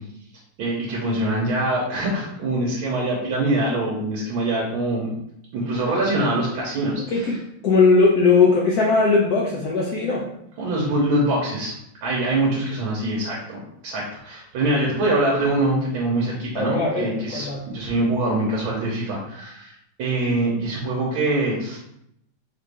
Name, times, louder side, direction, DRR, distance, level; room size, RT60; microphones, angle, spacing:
voice 1, 0.6-5.1 5.5-7.4 10.6-11.7 12.0-19.7 20.0-21.8, right 1 dB, 80° right, -4 dB, 1.6 m, -24 dB
voice 2, 7.1-10.3 16.5-17.7, left 4 dB, 75° left, -3 dB, 0.9 m, -19 dB
4.5 x 2.5 x 3.3 m, 0.76 s
omnidirectional pair, 2.2 m